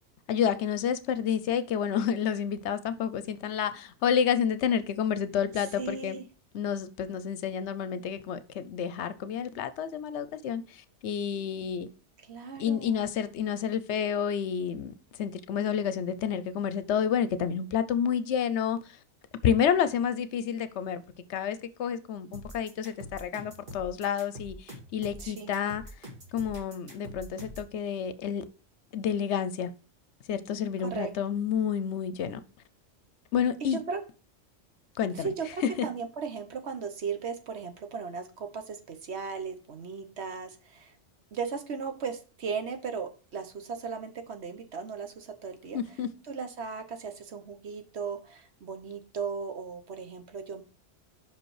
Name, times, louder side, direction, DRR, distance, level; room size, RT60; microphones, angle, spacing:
voice 1, 0.3-6.2 6.5-11.9 12.6-19.0 19.4-21.0 21.3-25.8 26.3-28.4 28.9-29.7 30.3-32.4 33.3-33.8 35.0-35.3 35.6-35.9 45.7-46.1, left 8 dB, 75° left, 0.9 m, -29 dB
voice 2, 5.8-6.2 12.2-13.1 25.2-25.5 30.8-31.1 33.7-34.0 35.1-40.9 41.3-45.8 46.3-50.6, right 5 dB, 65° right, 1.3 m, -36 dB
sound 1, 22.3-27.7, equal, 45° right, 2.2 m, -44 dB
5.5 x 5.2 x 4.7 m
omnidirectional pair, 1.2 m